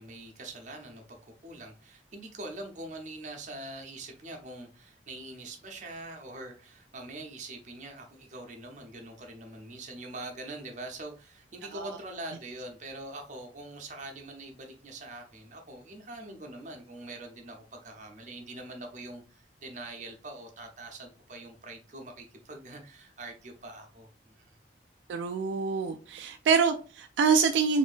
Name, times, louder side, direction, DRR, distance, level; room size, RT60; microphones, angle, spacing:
voice 1, 0.0-24.6, right 2 dB, 40° right, 0.8 m, -43 dB
voice 2, 25.1-27.8, right 5 dB, 70° right, 0.3 m, -26 dB
4.2 x 2.7 x 2.5 m
head